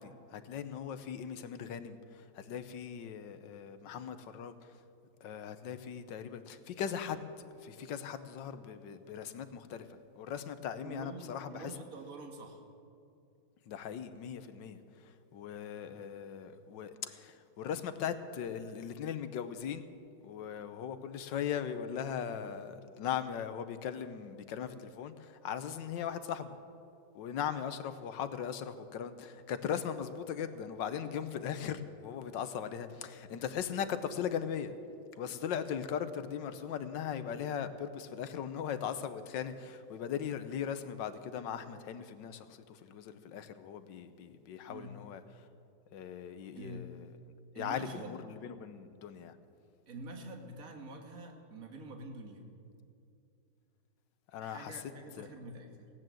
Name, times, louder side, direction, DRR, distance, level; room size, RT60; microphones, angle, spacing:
voice 1, 0.0-4.8 5.2-11.8 13.7-19.9 20.2-26.6 27.1-34.7 35.2-45.5 45.9-47.1 47.5-49.4 54.3-54.9 55.2-55.3, left 8 dB, 70° left, 10 dB, 1.4 m, -39 dB
voice 2, 10.8-12.6 27.6-27.7 44.7-45.0 46.5-46.9 47.5-48.2 49.9-52.4 54.4-55.9, right 2 dB, 45° right, 3 dB, 1.9 m, -46 dB
17.0 x 9.8 x 7.7 m, 2.6 s
omnidirectional pair, 2.2 m